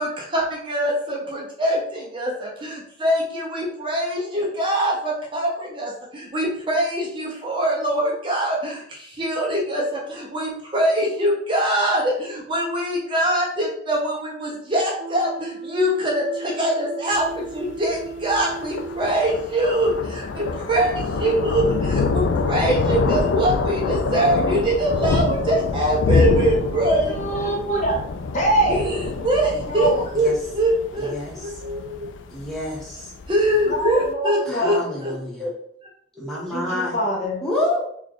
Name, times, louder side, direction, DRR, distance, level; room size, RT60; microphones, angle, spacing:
voice 1, 0.0-27.2 27.4-27.6 28.7-29.9 30.1-32.1 33.3-34.8 35.0-35.1 35.4-35.5 36.2-36.4, right 1 dB, 25° right, -1 dB, 0.6 m, -23 dB
sound 1, 15.0-19.2, right 3 dB, 85° right, 0.4 m, -35 dB
Thunder, 17.1-34.0, left 4 dB, 85° left, 0.3 m, -26 dB
voice 2, 27.1-28.0 28.3-29.0 29.4-30.1 33.7-34.7 36.5-37.4, right 1 dB, 40° left, -1 dB, 0.7 m, -24 dB
voice 3, 31.0-31.5 32.3-33.1 34.5-35.5 36.2-37.0 37.4-37.9, left 1 dB, ahead, -6 dB, 1.0 m, -28 dB
3.2 x 2.3 x 3.9 m, 0.65 s
head